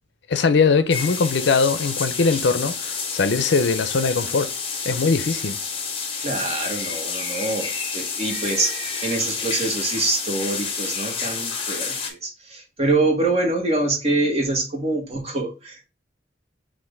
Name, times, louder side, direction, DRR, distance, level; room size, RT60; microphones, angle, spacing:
voice 1, 0.3-4.5 4.8-5.6, left 4 dB, 65° left, 0.5 m, -21 dB
sound 1, 0.9-12.1, left 5 dB, 30° left, 0.9 m, -29 dB
voice 2, 6.2-15.9, right 2 dB, 35° right, 1.3 m, -25 dB
5.8 x 2.5 x 3.2 m
head